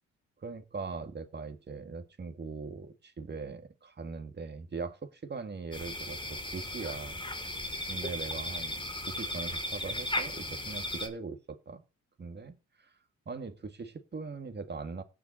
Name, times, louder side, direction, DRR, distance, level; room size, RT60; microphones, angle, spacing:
voice 1, 0.4-7.2 7.9-11.8 12.2-12.9 13.3-15.0, right 4 dB, 35° right, 2.2 m, -41 dB
sound 1, 5.7-11.1, left 1 dB, 15° left, 2.8 m, -36 dB
17.5 x 5.9 x 4.2 m
cardioid pair, 90°, 30 cm